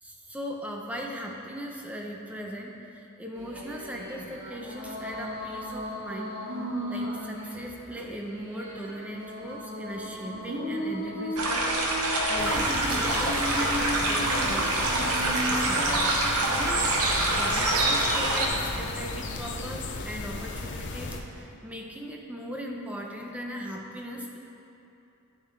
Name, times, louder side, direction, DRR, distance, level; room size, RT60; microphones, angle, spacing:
voice 1, 0.0-6.3 6.9-16.1 16.4-24.4, equal, 5° right, 0 dB, 0.6 m, -39 dB
sound 1, 3.3-18.3, equal, 55° right, 1.9 m, -36 dB
sound 2, 11.4-18.5, right 2 dB, 80° right, 1.0 m, -26 dB
sound 3, 12.4-21.2, left 3 dB, 50° left, 0.6 m, -35 dB
10.0 x 6.6 x 3.3 m, 2.8 s
head